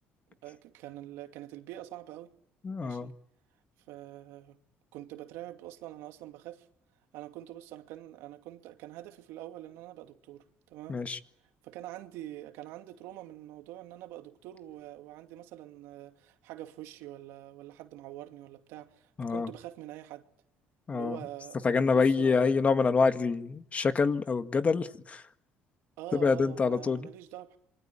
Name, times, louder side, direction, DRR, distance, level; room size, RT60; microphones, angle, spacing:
voice 1, 0.4-2.3 2.8-3.1 3.9-4.6 4.9-6.7 7.1-11.0 11.6-20.3 20.9-22.6 26.0-27.6, right 14 dB, 85° right, 2.5 m, -45 dB
voice 2, 2.6-3.1 10.9-11.2 19.2-19.5 20.9-21.2 21.6-25.2 26.1-27.1, left 5 dB, 30° left, 1.8 m, -26 dB
27.0 x 24.0 x 8.6 m
cardioid pair, 95°, 4 cm